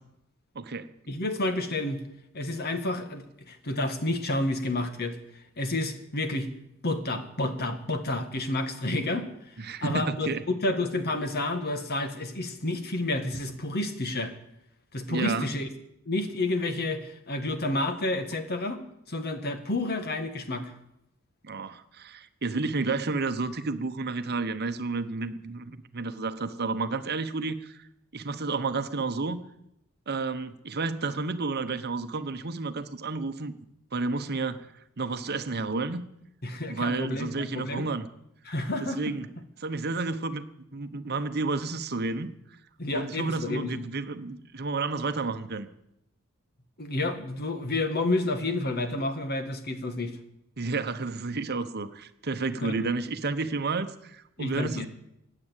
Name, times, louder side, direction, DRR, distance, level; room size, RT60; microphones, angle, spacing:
voice 1, 0.5-0.9 9.6-10.4 15.1-15.5 21.4-27.8 28.1-29.4 30.1-33.5 33.9-34.7 35.0-36.0 36.7-38.1 39.0-39.3 39.6-40.4 40.7-42.3 42.9-45.7 50.6-54.9, right 3 dB, 50° right, 10 dB, 1.0 m, -31 dB
voice 2, 1.1-2.0 2.3-5.2 5.6-6.5 6.8-9.5 9.8-14.3 14.9-15.7 16.1-18.8 19.1-20.7 36.4-37.8 38.5-39.1 42.8-43.9 46.8-50.2 52.6-52.9 54.4-54.9, left 2 dB, 50° left, 8 dB, 1.7 m, -30 dB
16.5 x 9.9 x 8.3 m, 0.82 s
head